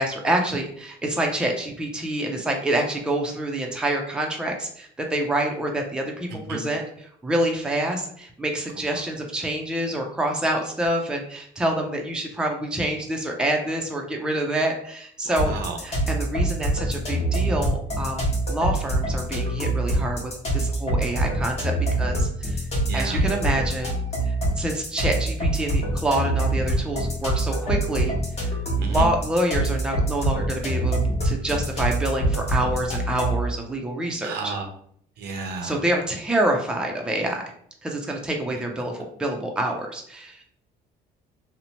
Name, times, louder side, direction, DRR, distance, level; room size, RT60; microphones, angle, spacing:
voice 1, 0.0-15.5 15.8-22.6 22.9-24.0 24.3-28.2 28.8-34.5 35.6-37.4 37.8-40.4, right 1 dB, 5° right, 1 dB, 0.4 m, -27 dB
voice 2, 6.3-6.6 15.2-15.8 22.9-23.2 28.8-29.1 34.2-34.7 35.2-35.8, right 4 dB, 75° right, 4 dB, 0.6 m, -32 dB
sound 1, 15.4-33.5, right 1 dB, 40° left, 1.0 m, -25 dB
2.8 x 2.0 x 2.8 m, 0.63 s
cardioid pair, 110°, 17 cm